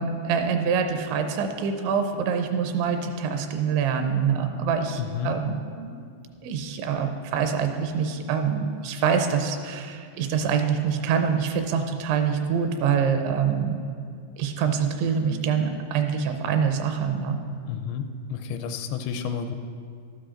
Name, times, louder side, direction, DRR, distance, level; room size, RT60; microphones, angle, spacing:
voice 1, 0.0-6.0 6.4-13.8 14.4-17.4, right 6 dB, 80° right, 6 dB, 3.1 m, -25 dB
voice 2, 5.0-5.3 17.7-19.6, left 7 dB, 85° left, 8 dB, 2.7 m, -31 dB
13.0 x 12.5 x 3.8 m, 2.3 s
omnidirectional pair, 5.3 m